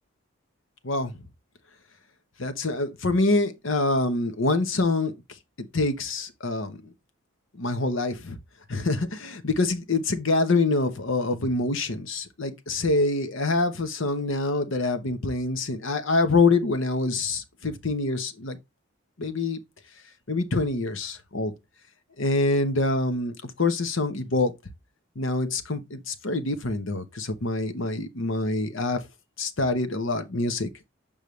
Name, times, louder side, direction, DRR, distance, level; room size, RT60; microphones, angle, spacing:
voice 1, 2.4-5.1 5.6-6.8 7.6-8.4 8.7-18.6 19.2-19.6 20.3-21.5 22.2-24.5 25.2-29.0 29.4-30.7, left 3 dB, 70° left, 1.0 m, -25 dB
6.9 x 5.4 x 3.2 m
head